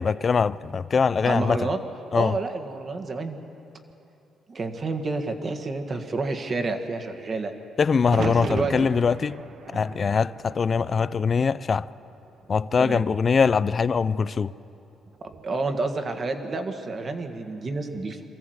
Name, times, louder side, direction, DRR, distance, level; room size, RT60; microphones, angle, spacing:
voice 1, 0.0-1.6 2.1-2.4 7.8-9.4 9.7-11.9 12.5-14.5, left 5 dB, 40° left, 0.4 m, -22 dB
voice 2, 1.2-1.8 2.1-3.4 4.5-7.5 8.2-8.9 12.8-13.0 15.2-18.2, right 3 dB, 40° right, 1.7 m, -29 dB
sound 1, 8.0-12.1 12.4-13.2 15.1-15.5, right 6 dB, 55° right, 0.8 m, -37 dB
23.0 x 14.5 x 8.0 m
cardioid pair, 90°, 0 cm